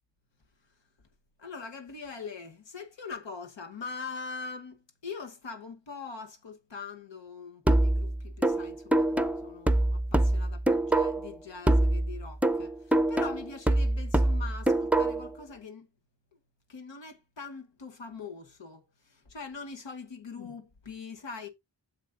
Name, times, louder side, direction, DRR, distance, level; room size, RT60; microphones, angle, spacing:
voice 1, 1.4-15.9 16.7-21.5, left 4 dB, 80° left, 1.2 m, -42 dB
sound 1, 7.7-11.3 11.7-15.3, right 1 dB, 5° right, 0.6 m, -25 dB
9.2 x 7.3 x 2.5 m
wide cardioid pair, 60°, 43 cm